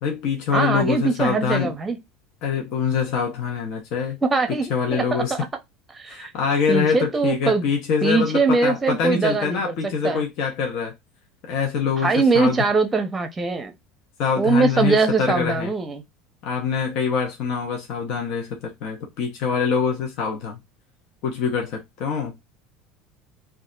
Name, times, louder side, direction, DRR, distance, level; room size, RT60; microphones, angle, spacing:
voice 1, 0.0-1.8 2.4-4.2 4.5-5.3 6.1-10.9 11.5-12.6 14.2-15.7 16.4-20.6 21.2-22.3, left 6 dB, 60° left, 0.8 m, -24 dB
voice 2, 0.5-2.0 4.3-5.5 5.9-6.3 6.7-7.7 8.0-9.7 10.0-10.2 12.0-13.7 14.4-16.0, right 4 dB, 20° right, 0.7 m, -22 dB
2.3 x 2.0 x 3.8 m
supercardioid pair, 90°, 0 cm